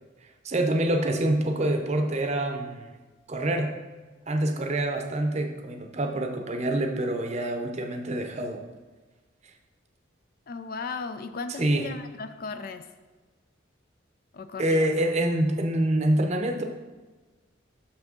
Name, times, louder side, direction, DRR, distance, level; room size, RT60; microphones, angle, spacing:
voice 1, 0.4-2.9 3.3-3.7 4.3-8.6 11.6-11.9 14.6-16.6, right 1 dB, 35° right, 4 dB, 0.6 m, -26 dB
voice 2, 10.5-12.8 14.3-14.9, left 4 dB, 45° left, 10 dB, 0.4 m, -36 dB
6.3 x 6.0 x 3.7 m, 1.3 s
head